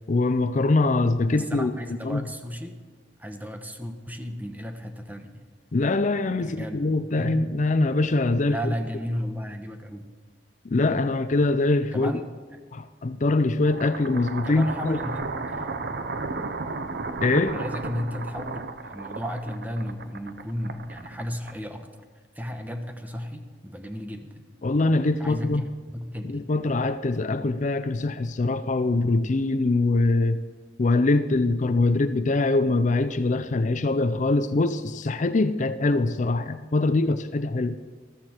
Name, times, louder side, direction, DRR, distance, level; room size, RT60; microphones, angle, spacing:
voice 1, 0.1-1.7 2.0-2.2 5.7-8.7 10.6-12.1 12.7-15.0 17.2-17.6 24.6-25.6 26.2-30.4 30.8-37.8, left 2 dB, 45° left, 0.5 m, -23 dB
voice 2, 1.3-2.8 3.2-5.5 6.4-6.8 7.2-7.4 8.4-10.1 11.9-12.2 14.4-15.7 17.5-21.9 22.3-24.4 25.2-26.3, equal, 10° right, 1.1 m, -34 dB
sound 1, 13.6-21.9, right 3 dB, 65° right, 0.8 m, -34 dB
14.5 x 13.0 x 4.5 m
head